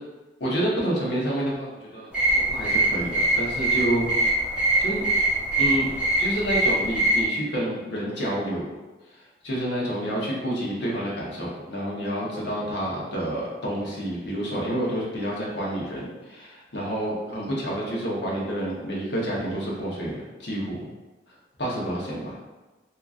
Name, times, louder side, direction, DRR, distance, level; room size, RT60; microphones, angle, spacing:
voice 1, 0.4-4.1 4.8-5.0 5.6-5.9 6.2-8.6 9.4-20.9 21.6-22.4, right 1 dB, 70° left, -5 dB, 0.9 m, -29 dB
sound 1, 2.1-7.2, right 1 dB, 5° right, 0.9 m, -23 dB
3.6 x 2.8 x 2.4 m, 1.2 s
head